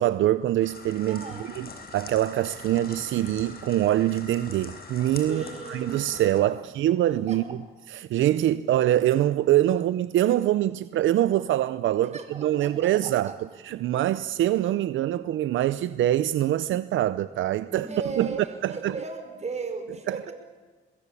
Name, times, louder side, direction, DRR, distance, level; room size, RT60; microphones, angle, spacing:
voice 1, 0.0-7.6 7.9-13.3 13.6-17.9 18.2-18.3 18.6-18.9 20.1-20.3, right 13 dB, 75° right, 0.7 m, -24 dB
sound 1, 0.6-6.4, left 3 dB, 50° left, 5.5 m, -43 dB
voice 2, 1.1-1.5 5.3-6.0 6.5-6.7 7.0-7.5 12.0-13.4 14.0-14.2 17.6-20.3, right 4 dB, 35° right, 5.6 m, -37 dB
23.0 x 21.0 x 8.5 m
cardioid pair, 90°, 20 cm